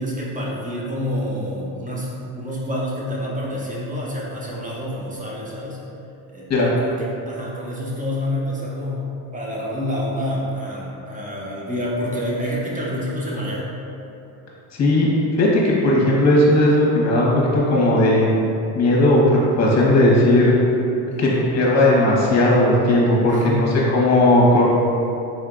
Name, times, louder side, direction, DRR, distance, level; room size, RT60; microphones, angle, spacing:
voice 1, 0.0-5.8 6.3-6.5 6.8-9.1 9.3-13.6 21.1-21.3 23.3-23.9, left 1 dB, 15° right, -5 dB, 0.8 m, -28 dB
voice 2, 14.7-15.1 15.4-18.3 18.7-20.5 21.2-24.7, left 1 dB, 35° left, -4 dB, 1.3 m, -16 dB
4.2 x 4.1 x 2.6 m, 2.8 s
supercardioid pair, 100°, 46 cm